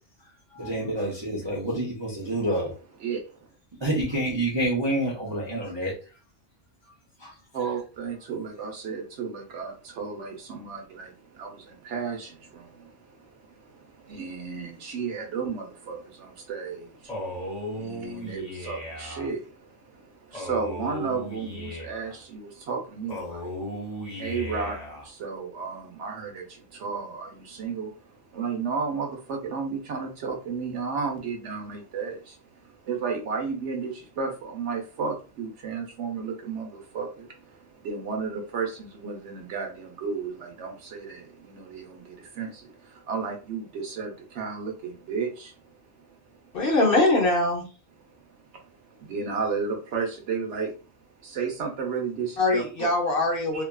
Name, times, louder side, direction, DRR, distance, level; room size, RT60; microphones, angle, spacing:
voice 1, 0.5-2.7 3.8-5.9 7.2-7.3, right 1 dB, 30° right, 0.5 m, -28 dB
voice 2, 3.0-3.5 7.5-23.7 24.0-46.6 48.2-50.7 51.2-52.9 53.5-53.6, right 5 dB, 70° right, 1.0 m, -33 dB
Male speech man speaking, 17.1-19.3 20.3-22.2 23.1-25.1, equal, 5° left, 1.0 m, -36 dB
voice 3, 46.5-47.7 52.4-53.6, left 2 dB, 55° left, 0.9 m, -22 dB
2.7 x 2.3 x 2.2 m
omnidirectional pair, 1.2 m